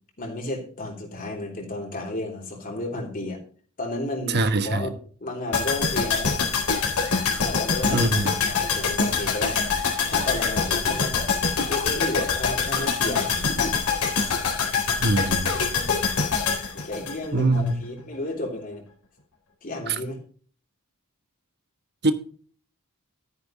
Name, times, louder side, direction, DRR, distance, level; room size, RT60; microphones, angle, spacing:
voice 1, 0.2-3.4 3.8-4.9 5.2-6.4 7.3-9.6 10.1-11.3 11.7-13.8 14.2-14.4 15.5-15.9 16.7-18.8 19.6-20.2, left 2 dB, 40° left, 3.3 m, -32 dB
voice 2, 4.3-4.8 7.9-8.3 15.0-15.5 17.3-17.7 19.9-20.0 22.0-22.1, right 2 dB, 50° right, 1.2 m, -22 dB
sound 1, 5.5-17.7 18.0-18.1, left 5 dB, 75° left, 3.9 m, -24 dB
13.5 x 9.4 x 3.1 m
head